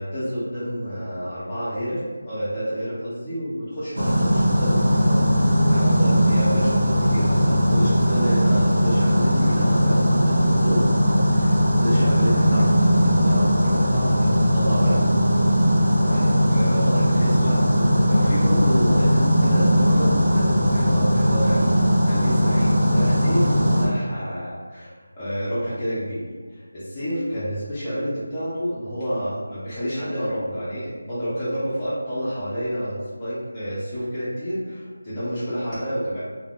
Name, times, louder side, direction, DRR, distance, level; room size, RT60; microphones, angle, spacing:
voice 1, 0.0-2.0 2.2-15.0 15.4-15.6 16.0-26.2 26.5-36.2, equal, 10° left, -13 dB, 0.5 m, -29 dB
sound 1, 4.0-23.9, equal, 45° right, 0.7 m, -19 dB
2.2 x 2.1 x 3.5 m, 1.4 s
figure-of-eight pair, 180°, 0 cm